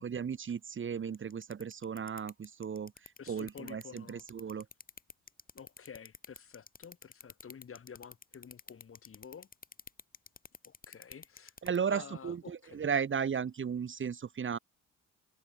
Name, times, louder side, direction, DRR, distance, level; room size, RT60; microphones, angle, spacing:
voice 1, 0.0-4.7 11.6-14.6, right 7 dB, 40° right, 1.6 m, -35 dB
sound 1, 1.1-11.8, left 5 dB, 30° left, 2.1 m, -49 dB
voice 2, 3.2-4.2 5.5-9.5 10.6-11.5 11.9-12.8, left 7 dB, 45° left, 4.8 m, -50 dB
cardioid pair, 90°, 30 cm